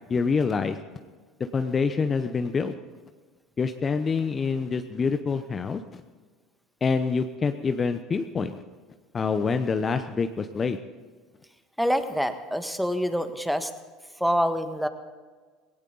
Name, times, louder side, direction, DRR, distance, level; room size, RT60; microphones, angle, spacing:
voice 1, 0.1-0.8 1.4-2.7 3.6-5.8 6.8-8.5 9.1-10.8, left 5 dB, 30° left, 9 dB, 0.8 m, -26 dB
voice 2, 11.8-13.7 14.2-14.9, equal, ahead, 9 dB, 1.5 m, -26 dB
18.0 x 17.5 x 4.0 m, 1.4 s
hypercardioid pair, 70°, 0 cm